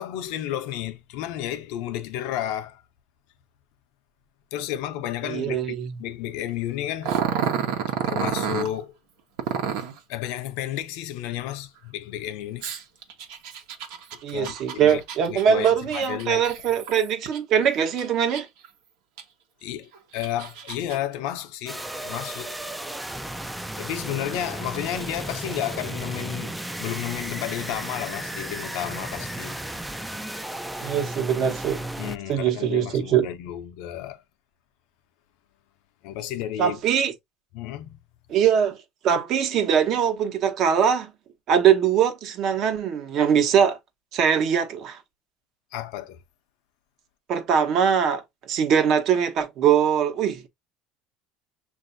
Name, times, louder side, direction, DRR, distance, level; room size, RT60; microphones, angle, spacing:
voice 1, 0.0-2.8 4.5-7.2 8.0-8.9 10.1-12.7 14.3-15.0 15.3-16.8 19.6-22.5 23.8-29.6 32.0-34.2 36.0-36.8 37.5-38.0 45.7-46.2, left 12 dB, 75° left, 0.7 m, -32 dB
voice 2, 5.2-6.0 14.2-18.5 30.8-31.8 32.3-33.3 36.6-37.1 38.3-38.8 39.0-41.1 41.5-43.8 44.1-45.0 47.3-50.5, right 8 dB, 50° right, 1.1 m, -22 dB
Growling, 7.0-8.7 9.4-10.0 12.6-17.4 17.8-18.7 19.2-19.3 19.9-21.0, right 8 dB, 75° right, 1.1 m, -29 dB
sound 1, 21.7-32.2, right 1 dB, 5° right, 0.4 m, -34 dB
6.8 x 2.7 x 2.6 m
cardioid pair, 125°, 0 cm